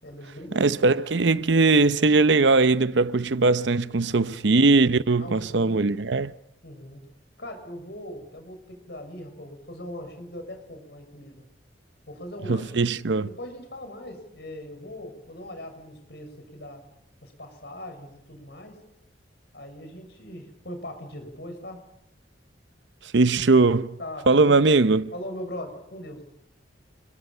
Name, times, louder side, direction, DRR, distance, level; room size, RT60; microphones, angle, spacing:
voice 1, 0.0-1.0 4.1-4.5 5.2-5.8 6.6-7.1 7.4-11.4 12.1-16.8 17.2-18.8 19.5-21.8 24.0-24.5 25.1-26.2, left 1 dB, 65° left, 6.5 m, -40 dB
voice 2, 0.5-6.3 12.5-13.3 23.1-24.0 24.3-25.1, right 3 dB, 75° right, 0.8 m, -20 dB
28.5 x 22.0 x 5.6 m
head